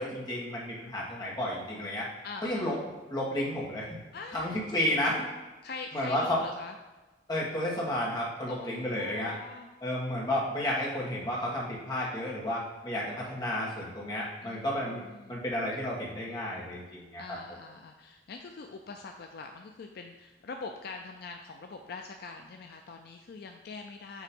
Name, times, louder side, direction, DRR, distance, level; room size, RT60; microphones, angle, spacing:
voice 1, 0.0-2.1 2.4-2.8 3.1-3.9 4.3-5.2 5.9-6.4 7.3-9.4 9.8-15.0 15.3-17.2, left 1 dB, 25° left, -5 dB, 1.5 m, -32 dB
voice 2, 2.2-2.8 4.1-4.5 5.6-6.7 8.5-9.7 14.4-15.4 17.2-24.2, left 4 dB, 60° left, 4 dB, 0.4 m, -43 dB
7.2 x 3.0 x 5.2 m, 1.2 s
head